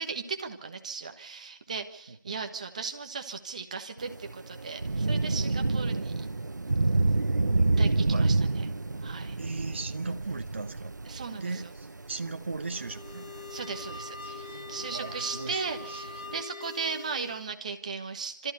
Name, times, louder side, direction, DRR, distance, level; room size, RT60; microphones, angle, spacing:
voice 1, 0.0-6.3 7.8-8.7 9.0-9.4 11.1-11.5 13.5-18.5, right 5 dB, 20° right, 6 dB, 1.3 m, -37 dB
voice 2, 2.1-2.5 8.0-8.3 9.4-10.9 11.4-13.3 14.2-14.6 14.9-16.0, right 3 dB, 40° right, 7 dB, 1.2 m, -38 dB
Thunder / Rain, 4.0-16.4, right 3 dB, 70° right, 0.8 m, -29 dB
sound 1, 12.7-17.5, left 4 dB, 20° left, 1.0 m, -43 dB
28.0 x 14.0 x 8.3 m, 0.71 s
figure-of-eight pair, 170°, 10 cm